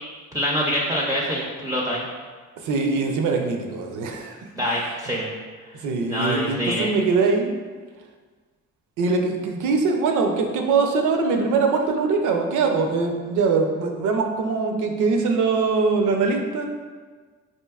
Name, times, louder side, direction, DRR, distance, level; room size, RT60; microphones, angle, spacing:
voice 1, 0.3-2.1 4.6-5.3 6.1-6.9, equal, 10° right, -3 dB, 0.4 m, -25 dB
voice 2, 2.6-4.4 4.6-4.9 5.7-7.5 9.0-16.7, right 4 dB, 80° right, 3 dB, 0.6 m, -22 dB
4.4 x 2.6 x 2.3 m, 1.5 s
cardioid pair, 90°, 30 cm